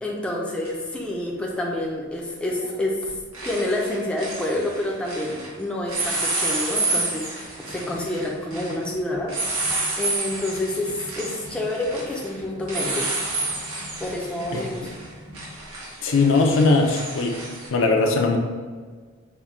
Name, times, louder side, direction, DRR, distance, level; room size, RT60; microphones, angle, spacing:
voice 1, 0.0-3.1 3.4-9.3 10.0-13.1 14.0-14.9, left 1 dB, 5° left, -3 dB, 0.5 m, -28 dB
sound 1, 0.6-0.7 2.5-2.8 3.0-5.5 5.9-17.7, right 2 dB, 85° right, 1.3 m, -30 dB
voice 2, 14.5-14.9 16.0-17.4 17.7-18.4, left 3 dB, 60° left, 2 dB, 0.5 m, -20 dB
5.6 x 2.2 x 3.5 m, 1.5 s
head